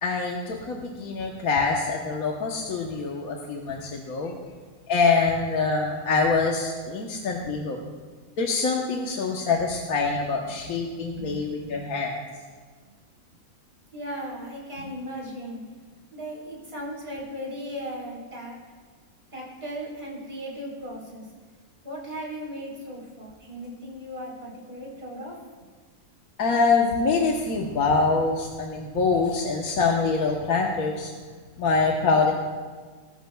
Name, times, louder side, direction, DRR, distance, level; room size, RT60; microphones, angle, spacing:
voice 1, 0.0-4.4 4.9-7.8 8.4-12.1 26.4-31.1 31.6-32.3, left 4 dB, 75° left, 0 dB, 1.5 m, -25 dB
voice 2, 11.0-11.9 13.9-15.6 16.1-18.6 19.3-21.3 21.8-25.4, equal, 40° right, -4 dB, 4.2 m, -37 dB
20.0 x 13.5 x 2.3 m, 1.5 s
omnidirectional pair, 1.5 m